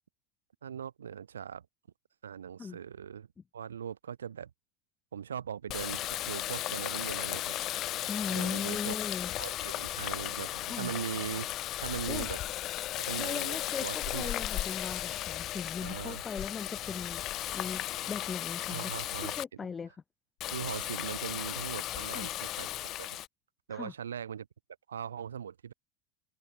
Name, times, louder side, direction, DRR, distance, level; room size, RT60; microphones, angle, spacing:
voice 1, 0.6-1.7 2.2-3.3 3.5-4.5 5.1-7.5 8.3-9.0 9.4-11.5 11.8-12.4 13.1-14.4 15.8-16.2 18.7-19.4 20.5-23.2 23.7-24.5 24.9-25.7, right 8 dB, 75° right, 6.4 m, -40 dB
Water tap faucet, 5.7-19.4 20.4-23.3, left 14 dB, 40° left, 4.6 m, -35 dB
voice 2, 8.1-9.3 10.6-10.9 12.1-12.3 13.2-13.8 14.1-17.2 17.5-18.9 19.3-19.9 22.1-22.3 23.7-23.9, left 6 dB, 25° left, 6.8 m, -38 dB
figure-of-eight pair, 70°, 0 cm